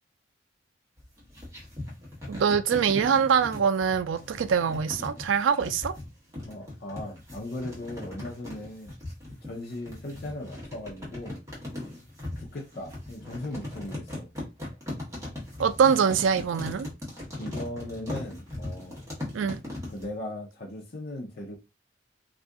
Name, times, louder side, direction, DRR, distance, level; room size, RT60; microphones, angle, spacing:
sound 1, 1.0-20.1, left 1 dB, 15° right, 1.2 m, -39 dB
voice 1, 2.3-6.0 15.6-16.9 19.3-19.6, right 7 dB, 80° right, 0.3 m, -24 dB
voice 2, 6.4-8.9 9.4-11.4 12.4-14.3 17.4-19.0 19.9-21.6, left 1 dB, 50° left, 0.5 m, -38 dB
2.6 x 2.4 x 3.5 m
head